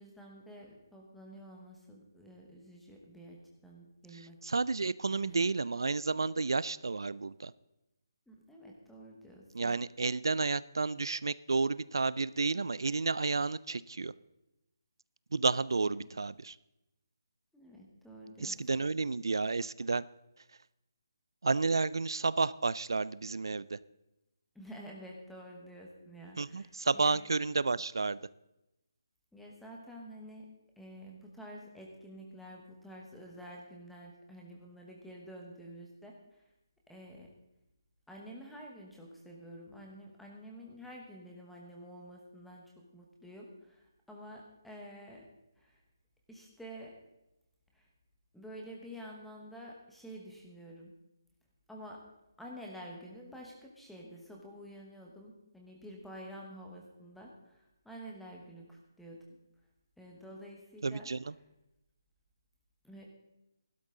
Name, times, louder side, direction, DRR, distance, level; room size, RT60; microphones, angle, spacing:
voice 1, 0.0-4.5 5.1-5.4 8.3-9.7 15.8-16.1 17.5-18.6 24.5-27.2 29.3-30.5 30.8-36.1 36.9-37.3 38.1-42.6 42.9-45.3 45.6-45.8 46.3-47.0 47.7-47.8 48.3-50.9 51.7-52.0 52.4-59.3 60.0-61.1 62.8-63.0, equal, ahead, -2 dB, 1.1 m, -49 dB
voice 2, 4.1-7.5 9.5-14.1 15.3-16.6 18.4-20.0 21.4-23.8 26.4-28.2 60.8-61.3, right 4 dB, 85° right, 19 dB, 0.4 m, -31 dB
15.5 x 12.0 x 3.8 m, 0.92 s
hypercardioid pair, 175°, 2 cm